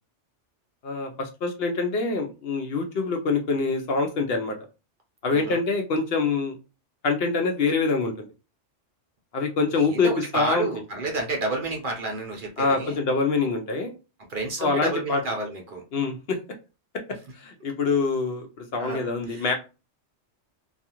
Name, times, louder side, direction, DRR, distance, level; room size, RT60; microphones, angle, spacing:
voice 1, 0.8-4.6 5.2-6.6 7.0-8.3 9.3-10.7 12.6-13.9 14.6-15.2 15.9-16.4 17.3-19.5, left 4 dB, 65° left, 4 dB, 0.7 m, -25 dB
voice 2, 9.7-13.0 14.3-15.9 18.8-19.5, right 2 dB, 55° right, 1 dB, 0.7 m, -30 dB
2.4 x 2.3 x 2.8 m, 0.30 s
omnidirectional pair, 1.2 m